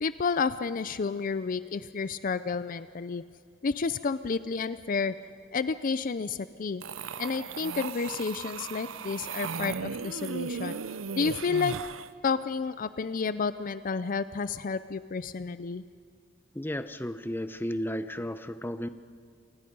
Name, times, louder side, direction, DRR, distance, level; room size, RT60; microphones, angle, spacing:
voice 1, 0.0-3.2 3.6-5.1 5.5-6.8 7.2-10.8 11.1-11.8 12.2-15.8, left 5 dB, 45° left, 14 dB, 0.5 m, -30 dB
sound 1, 6.8-12.1, right 6 dB, 90° right, 0.6 m, -36 dB
voice 2, 16.5-18.9, equal, 10° left, 11 dB, 0.7 m, -33 dB
27.5 x 19.5 x 5.4 m, 2.3 s
head